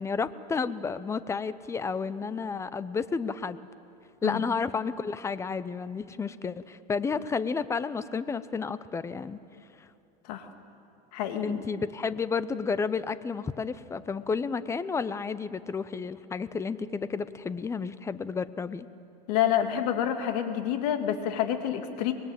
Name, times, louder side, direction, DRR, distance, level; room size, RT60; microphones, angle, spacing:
voice 1, 0.0-3.7 4.2-9.4 9.8-9.9 11.4-18.9, left 5 dB, 15° left, 15 dB, 0.7 m, -31 dB
voice 2, 11.1-11.6 19.3-22.1, left 10 dB, 70° left, 7 dB, 2.4 m, -28 dB
24.0 x 20.5 x 9.1 m, 2.8 s
supercardioid pair, 140°, 21 cm